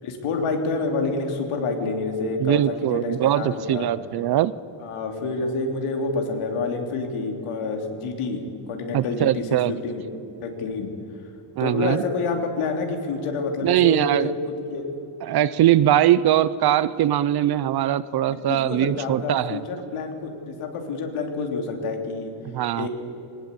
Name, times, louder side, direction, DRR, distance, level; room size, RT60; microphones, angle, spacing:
voice 1, 0.0-3.9 4.8-8.4 8.7-10.0 10.4-10.9 11.6-14.3 14.7-14.8 18.3-22.3 22.7-22.9, left 3 dB, 80° left, 4 dB, 3.3 m, -28 dB
voice 2, 2.4-4.5 8.9-9.7 11.6-12.0 13.6-14.3 15.2-19.6 22.4-22.9, right 12 dB, 50° right, 18 dB, 0.6 m, -21 dB
21.0 x 19.0 x 8.3 m, 2.9 s
cardioid pair, 160°, 50 cm